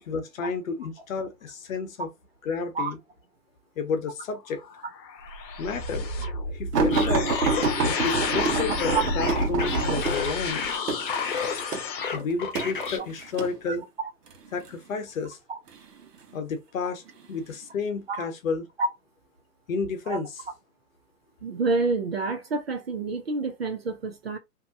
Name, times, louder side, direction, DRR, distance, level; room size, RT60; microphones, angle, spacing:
voice 1, 0.1-2.1 2.4-3.0 3.8-4.6 5.6-6.3 6.5-7.3 7.8-10.7 12.1-13.9 14.5-15.4 16.3-17.0 17.3-18.7 19.7-20.3, left 5 dB, 55° left, 0.9 m, -31 dB
sound 1, 4.5-12.1, left 4 dB, 85° left, 0.8 m, -31 dB
sound 2, 6.7-13.6 14.3-14.7 15.7-16.3 17.1-17.3 17.6-17.7, right 4 dB, 75° right, 1.0 m, -27 dB
sound 3, 6.9-11.7 12.0-13.0, left 5 dB, 35° left, 0.4 m, -32 dB
voice 2, 21.4-24.4, right 3 dB, 40° right, 0.4 m, -28 dB
2.7 x 2.2 x 2.6 m
hypercardioid pair, 140°, 49 cm